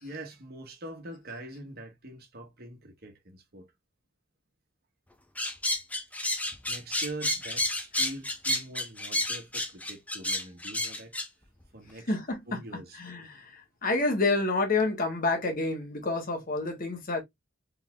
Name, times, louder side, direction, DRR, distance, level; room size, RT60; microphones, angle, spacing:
voice 1, 0.0-3.7 6.7-11.1 11.7-12.1 12.5-13.0, right 1 dB, 55° right, 1.3 m, -43 dB
sound 1, 5.4-11.3, left 1 dB, 10° left, 0.7 m, -30 dB
voice 2, 12.1-12.6 12.9-17.2, left 3 dB, 45° left, 1.4 m, -29 dB
3.9 x 3.6 x 2.3 m
head